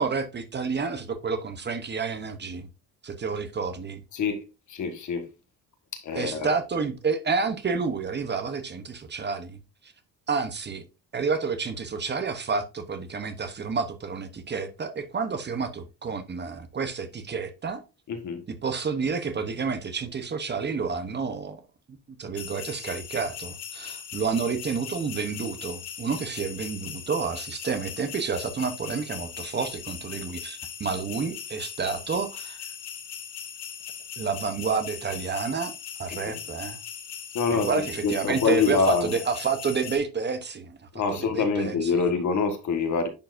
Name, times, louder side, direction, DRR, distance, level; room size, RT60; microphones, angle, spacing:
voice 1, 0.0-2.7 3.0-4.0 6.1-9.6 10.3-10.8 11.1-17.8 18.6-21.6 22.2-32.6 34.2-35.7 36.0-36.8 37.5-40.9 41.2-42.1, right 5 dB, 30° right, 0.8 m, -29 dB
voice 2, 4.1-5.3 5.9-6.5 18.1-18.4 36.1-36.4 37.3-39.2 40.9-43.1, left 5 dB, 50° left, 1.6 m, -26 dB
sound 1, 22.4-40.0, left 8 dB, 75° left, 2.0 m, -39 dB
10.0 x 4.6 x 2.6 m
cardioid pair, 130°, 36 cm